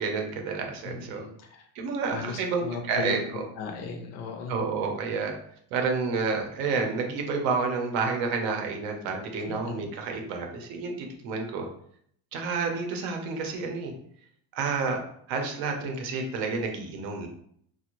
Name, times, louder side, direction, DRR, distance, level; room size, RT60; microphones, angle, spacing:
voice 1, 0.0-1.3 1.7-3.5 4.5-5.3 5.7-11.7 12.3-13.9 14.5-15.0 15.3-17.3, right 4 dB, 65° right, 3 dB, 0.7 m, -29 dB
voice 2, 0.8-1.7 2.1-4.6 9.5-9.8, left 5 dB, 40° left, 4 dB, 0.5 m, -37 dB
2.5 x 2.1 x 2.9 m, 0.65 s
cardioid pair, 150°, 40 cm